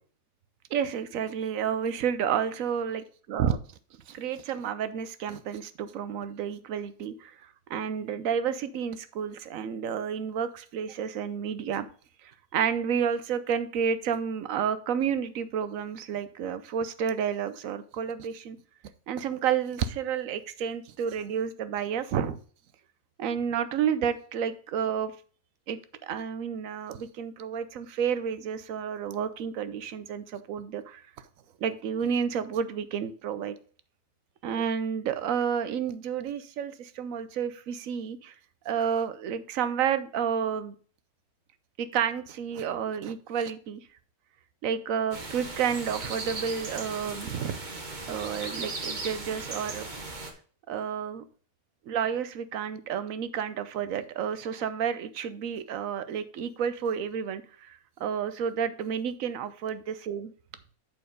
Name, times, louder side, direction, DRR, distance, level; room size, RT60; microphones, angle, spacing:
voice 1, 0.7-3.0 3.3-3.6 4.1-11.9 12.2-18.6 19.1-22.4 23.2-25.1 25.7-31.0 31.6-33.5 34.4-38.3 38.6-40.7 41.8-43.8 44.6-47.6 48.1-49.9 50.7-51.2 51.9-60.3, right 7 dB, 70° right, 13 dB, 1.1 m, -30 dB
sound 1, 45.1-50.3, right 3 dB, 35° right, 1.3 m, -37 dB
7.6 x 4.5 x 5.2 m, 0.42 s
omnidirectional pair, 1.5 m